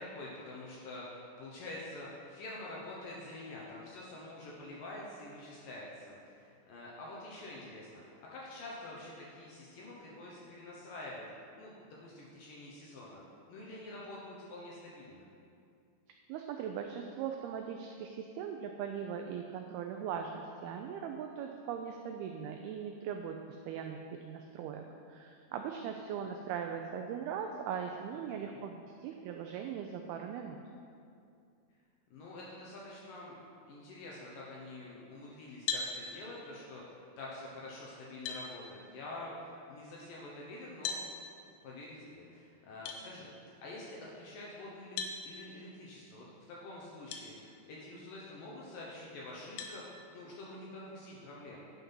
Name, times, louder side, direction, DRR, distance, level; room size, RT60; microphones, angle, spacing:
voice 1, 0.0-11.2 11.6-13.2 13.5-15.3 28.1-28.6 32.1-41.0 41.6-51.6, left 2 dB, 70° left, -4 dB, 2.2 m, -47 dB
voice 2, 16.3-23.4 23.7-30.6, right 7 dB, 90° right, 4 dB, 2.2 m, -40 dB
sound 1, 35.7-35.9 37.6-37.7 38.2-38.5 40.8-41.1 42.8-43.0 45.0-45.2 47.1-47.2 47.9-48.0 49.6-49.8, left 5 dB, 90° left, 2.0 m, -36 dB
9.6 x 5.8 x 5.5 m, 2.5 s
omnidirectional pair, 5.0 m